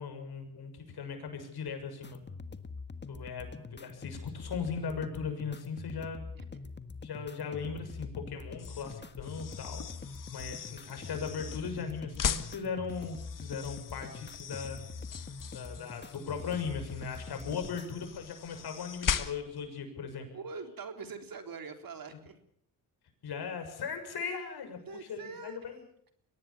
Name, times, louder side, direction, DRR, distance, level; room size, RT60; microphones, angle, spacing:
voice 1, 0.0-2.2 3.1-6.2 7.0-9.8 10.3-14.8 15.5-20.3 23.2-25.8, left 6 dB, 70° left, 6 dB, 6.8 m, -38 dB
sound 1, 2.0-18.0, left 4 dB, 25° left, 1.6 m, -44 dB
voice 2, 6.3-6.7 20.3-22.4 24.9-25.6, right 5 dB, 55° right, 7 dB, 3.8 m, -43 dB
sound 2, 8.5-19.7, left 7 dB, 50° left, 1.8 m, -40 dB
23.0 x 18.5 x 7.1 m, 0.69 s
cardioid pair, 75°, 40 cm